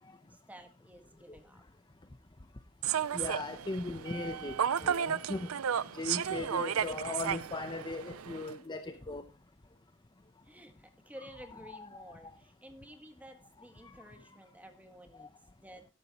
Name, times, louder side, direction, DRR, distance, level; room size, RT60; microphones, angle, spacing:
voice 1, 0.3-1.6 6.5-6.8 10.5-15.3 15.6-15.8, equal, 5° right, 6 dB, 1.7 m, -52 dB
Human voice / Subway metro underground, 2.8-8.5, right 8 dB, 80° right, 0.5 m, -33 dB
voice 2, 3.1-5.5 5.9-9.2 11.2-11.3 11.5-12.3 13.8-13.9 15.2-15.3, left 2 dB, 20° left, 9 dB, 0.7 m, -39 dB
12.5 x 12.0 x 2.9 m, 0.28 s
head